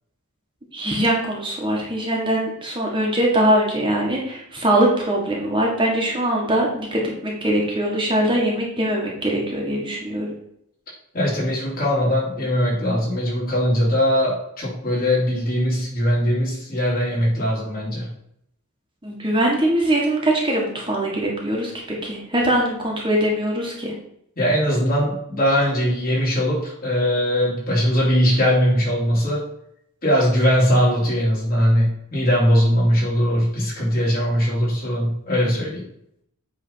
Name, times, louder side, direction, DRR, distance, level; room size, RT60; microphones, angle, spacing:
voice 1, 0.7-10.3 19.0-23.9, right 1 dB, 20° right, -2 dB, 1.6 m, -22 dB
voice 2, 11.1-18.1 24.4-29.4 30.0-35.8, equal, 40° left, -5 dB, 3.3 m, -20 dB
8.5 x 3.8 x 5.5 m, 0.72 s
head